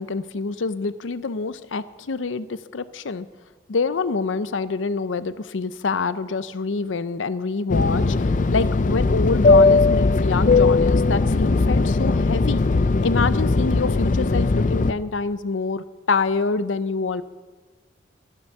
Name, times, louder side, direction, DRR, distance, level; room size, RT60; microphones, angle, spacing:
voice 1, 0.0-3.3 3.7-12.7 13.0-17.2, left 4 dB, 90° left, 15 dB, 0.6 m, -26 dB
Fixed-wing aircraft airplane, 7.7-14.9, left 3 dB, 40° left, 0.4 m, -19 dB
12.5 x 11.5 x 6.6 m, 1.4 s
head